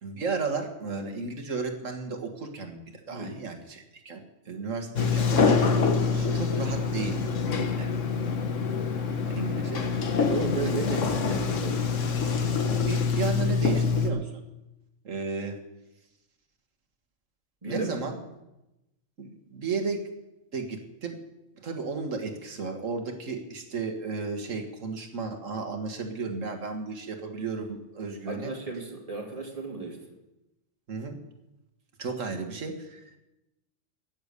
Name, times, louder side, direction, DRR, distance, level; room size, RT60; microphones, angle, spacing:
voice 1, 0.0-5.7 6.1-7.9 9.3-10.0 10.6-10.7 12.8-14.4 15.0-15.6 17.7-18.2 19.2-20.0 20.5-21.2 21.6-28.5 30.9-31.2 32.0-33.2, right 4 dB, 85° right, 4 dB, 2.0 m, -34 dB
voice 2, 3.1-3.4 6.0-6.4 10.2-11.9 17.6-17.9 28.3-30.0, right 3 dB, 30° right, 0 dB, 2.5 m, -34 dB
Sliding door, 5.0-14.1, left 5 dB, 75° left, 1.5 m, -25 dB
13.5 x 9.7 x 6.8 m, 0.95 s
omnidirectional pair, 1.3 m